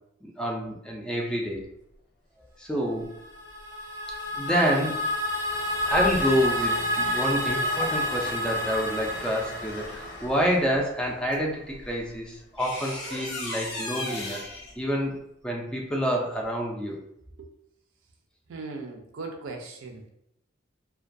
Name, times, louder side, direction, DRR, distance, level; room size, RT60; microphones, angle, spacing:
voice 1, 0.2-1.6 2.6-3.2 4.3-5.1 5.9-14.4 14.8-15.1 15.4-17.0, equal, 5° left, -1 dB, 0.3 m, -28 dB
Train, 1.5-1.6 2.9-3.7 4.1-12.8 14.4-14.7, left 1 dB, 60° left, 0.6 m, -42 dB
sound 1, 3.2-10.3, left 1 dB, 15° right, 0.7 m, -29 dB
sound 2, 11.3-11.4 12.6-14.7, left 2 dB, 90° left, 1.0 m, -35 dB
voice 2, 18.5-20.1, right 3 dB, 80° right, 3 dB, 0.4 m, -38 dB
2.2 x 2.2 x 2.5 m, 0.77 s
head